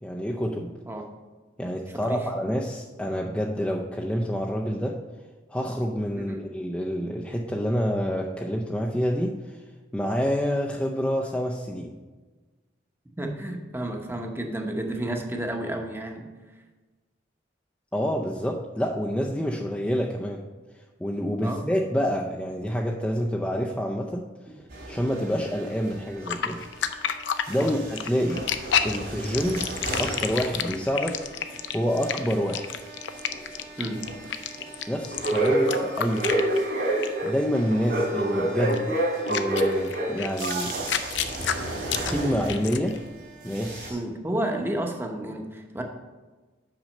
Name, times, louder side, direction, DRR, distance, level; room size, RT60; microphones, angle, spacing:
voice 1, 0.0-0.7 1.6-5.0 5.5-9.6 9.9-11.9 17.9-20.4 21.0-24.2 24.9-26.6 27.5-28.5 28.8-29.6 30.0-31.2 31.7-32.7 34.9-36.4 37.2-39.0 39.3-40.7 42.1-43.0 43.4-44.0, equal, 5° left, -2 dB, 0.5 m, -27 dB
voice 2, 1.9-2.3 6.2-6.5 13.2-16.2 21.4-21.7 27.6-27.7 33.8-34.0 43.9-45.8, right 1 dB, 10° right, 3 dB, 0.9 m, -31 dB
sound 1, 24.7-27.1 27.4-43.1 43.4-43.9, right 1 dB, 65° right, 2.8 m, -30 dB
sound 2, 26.3-36.8 37.0-37.3 38.7-38.8 39.3-43.0, left 8 dB, 70° left, 0.5 m, -30 dB
6.0 x 5.4 x 6.4 m, 1.3 s
head